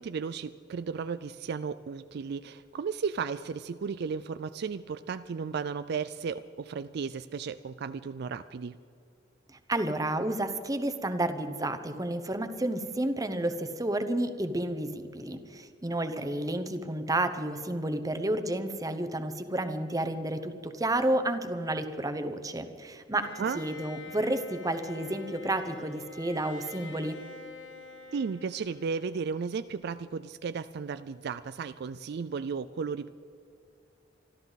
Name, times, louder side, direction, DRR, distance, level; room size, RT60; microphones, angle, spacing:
voice 1, 0.0-8.8 23.4-23.6 28.1-33.1, right 5 dB, 60° right, 12 dB, 0.4 m, -34 dB
voice 2, 9.7-27.2, right 1 dB, 20° right, 9 dB, 1.0 m, -31 dB
Bowed string instrument, 23.2-29.2, left 4 dB, 75° left, 1.4 m, -46 dB
26.0 x 12.5 x 4.1 m, 2.4 s
head